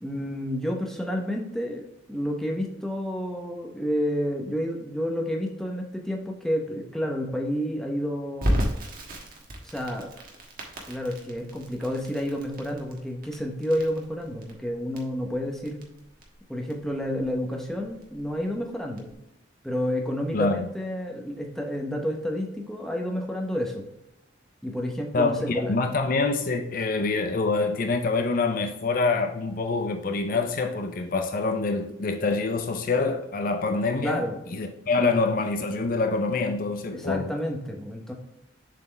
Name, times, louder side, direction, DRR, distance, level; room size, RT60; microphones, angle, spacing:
voice 1, 0.0-8.6 9.6-10.1 10.9-15.8 16.5-19.1 19.6-23.8 24.6-25.7 34.0-34.4 35.0-35.1 36.9-38.1, equal, ahead, 0.9 m, -30 dB
Crackle, 8.4-19.1, equal, 50° right, 1.4 m, -34 dB
voice 2, 25.1-34.2 34.5-37.3, left 3 dB, 45° left, 0.5 m, -26 dB
7.3 x 4.2 x 3.3 m
head